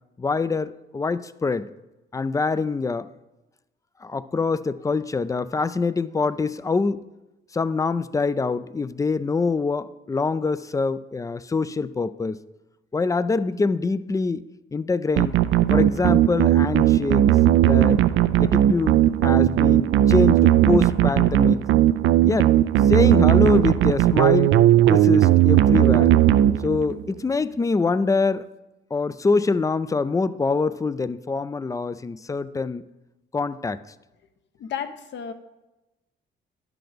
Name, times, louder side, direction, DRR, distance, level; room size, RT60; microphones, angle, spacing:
voice 1, 0.2-1.7 2.1-3.1 4.0-7.0 7.5-12.4 12.9-14.4 14.7-15.4 15.7-17.3 17.6-18.0 18.4-21.7 22.2-22.5 22.8-24.6 24.9-26.1 26.6-28.4 28.9-32.9 33.3-33.8, left 4 dB, 15° left, 15 dB, 0.4 m, -24 dB
sound 1, 15.2-27.0, right 12 dB, 75° right, 0.4 m, -17 dB
voice 2, 34.6-35.3, left 8 dB, 65° left, 9 dB, 0.9 m, -32 dB
11.0 x 6.0 x 5.1 m, 1.0 s
cardioid pair, 90°, 20 cm